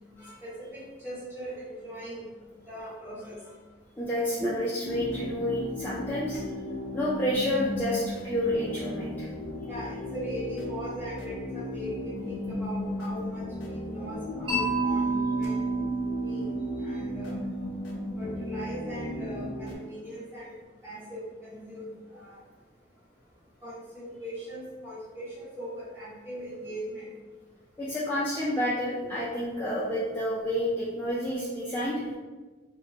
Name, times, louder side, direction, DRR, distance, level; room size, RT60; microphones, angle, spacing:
voice 1, 0.4-2.3 2.7-3.4 4.4-4.5 9.7-13.4 13.8-15.7 16.2-16.5 16.8-17.4 18.1-20.5 20.8-22.4 23.6-27.1, equal, 10° right, -9 dB, 1.3 m, -39 dB
voice 2, 4.0-6.4 6.9-9.3 27.8-32.0, left 1 dB, 10° left, -9 dB, 0.4 m, -29 dB
sound 1, 4.8-19.8, left 1 dB, 75° left, 0.4 m, -36 dB
Mallet percussion, 14.5-18.5, right 3 dB, 30° right, 0.8 m, -30 dB
2.7 x 2.1 x 2.6 m, 1.3 s
head